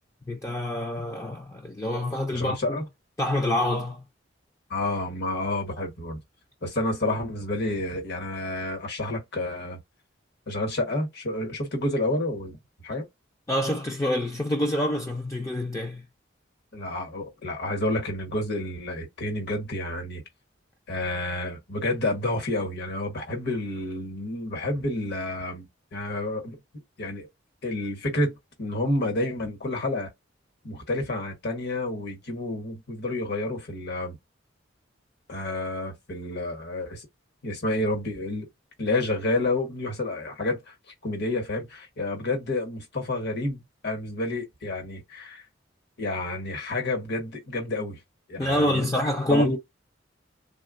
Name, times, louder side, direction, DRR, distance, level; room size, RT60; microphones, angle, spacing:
voice 1, 0.3-2.8 3.2-4.0 13.5-16.0 48.4-49.6, left 1 dB, 15° left, 0.4 m, -26 dB
voice 2, 2.3-2.8 4.7-6.2 6.6-9.8 10.5-12.6 12.8-13.1 16.7-20.2 20.9-25.7 25.9-26.6 27.0-27.3 27.6-30.1 30.6-34.2 35.3-37.1 37.4-38.5 38.8-40.7 41.0-45.4 46.0-48.0 48.3-48.9 49.3-49.6, left 2 dB, 60° left, 1.2 m, -29 dB
3.3 x 2.2 x 2.4 m
head